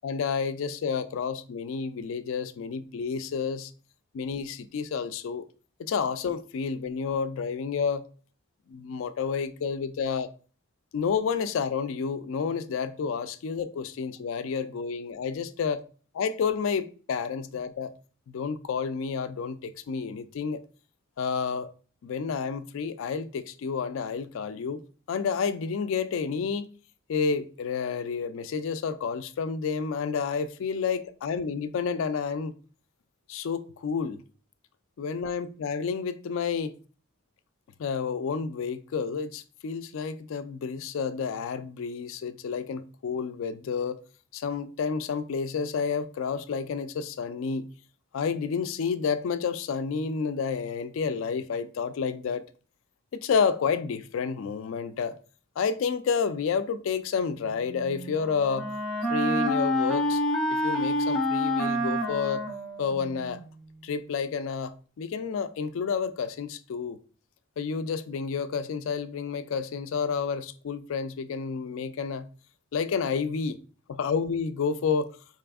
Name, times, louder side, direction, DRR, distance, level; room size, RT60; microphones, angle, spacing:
voice 1, 0.0-3.7 4.1-5.5 5.8-8.0 8.7-10.3 10.9-15.8 16.1-17.9 18.3-20.6 21.2-21.7 22.0-24.8 25.1-26.7 27.1-32.5 33.3-34.2 35.0-36.8 37.8-44.0 44.3-47.6 48.1-52.4 53.1-55.2 55.6-58.7 59.1-60.2 60.5-62.4 62.8-63.4 63.8-67.0 67.6-72.3 72.7-73.6 73.9-75.1, left 6 dB, 70° left, 0.3 m, -30 dB
Wind instrument woodwind instrument, 57.6-63.5, equal, 5° left, 0.4 m, -28 dB
4.1 x 3.4 x 2.3 m
head